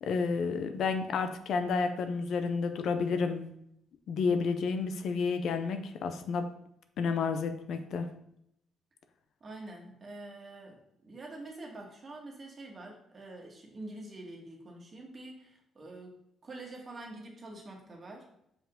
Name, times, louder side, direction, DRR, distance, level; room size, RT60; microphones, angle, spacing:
voice 1, 0.0-3.5 4.1-6.5 7.0-8.1, left 5 dB, 70° left, 0.6 m, -30 dB
voice 2, 9.4-16.1 16.4-18.3, right 2 dB, 35° right, 1.6 m, -46 dB
5.5 x 4.9 x 3.7 m
cardioid pair, 105°, 0 cm